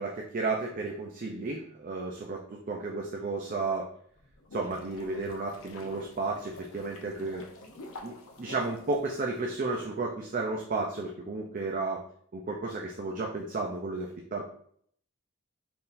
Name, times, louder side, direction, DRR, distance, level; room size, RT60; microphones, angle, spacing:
voice 1, 0.0-3.9 4.5-7.4 8.0-12.0 12.3-14.4, right 3 dB, 40° right, -1 dB, 0.5 m, -33 dB
sound 1, 4.1-9.5, left 2 dB, 85° left, 0.8 m, -48 dB
4.4 x 3.6 x 2.6 m, 0.63 s
head